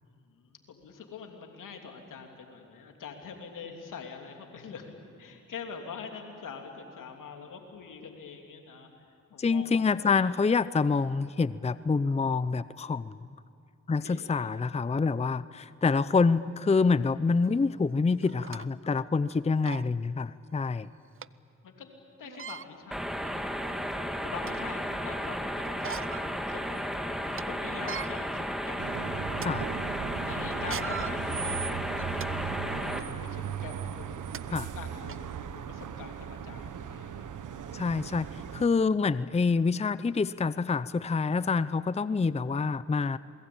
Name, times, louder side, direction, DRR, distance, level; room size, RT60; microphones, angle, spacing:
voice 1, 0.0-4.9 5.2-8.9 9.3-10.3 14.0-14.5 21.6-21.9 22.2-29.1 30.3-37.3, left 6 dB, 80° left, 3 dB, 3.1 m, -45 dB
voice 2, 9.4-13.2 13.9-20.9 29.4-29.7 34.5-34.7 37.7-38.2 38.5-43.2, left 4 dB, 20° left, 16 dB, 0.6 m, -26 dB
sound 1, 17.5-17.6 18.2-18.7 19.2-19.3 19.6-19.9 21.2-21.3 22.2-22.7 23.4-23.5 24.0-24.7 25.6-26.3 26.7-26.8 27.2-27.4 27.8-28.1 28.7-28.9 29.3-29.5 30.5-32.3 32.9-33.1 33.9-34.0 34.3-34.4 35.1-35.2, right 7 dB, 45° right, 0.6 m, -39 dB
sound 2, 22.9-33.0, equal, ahead, 2.5 m, -34 dB
sound 3, 28.8-38.7, right 8 dB, 75° right, 1.2 m, -38 dB
28.0 x 21.0 x 8.8 m, 2.4 s
cardioid pair, 55°, 31 cm